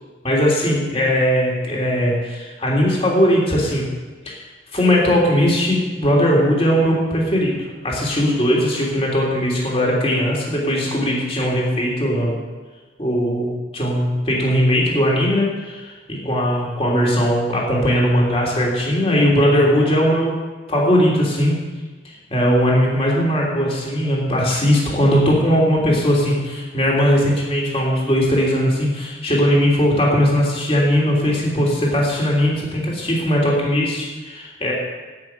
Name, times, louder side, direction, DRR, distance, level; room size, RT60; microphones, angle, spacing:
voice 1, 0.2-3.8 4.2-4.4 4.7-7.5 7.8-12.3 13.0-20.4 20.7-21.6 22.3-34.7, equal, 30° left, -3 dB, 3.3 m, -19 dB
10.5 x 8.6 x 9.8 m, 1.3 s
head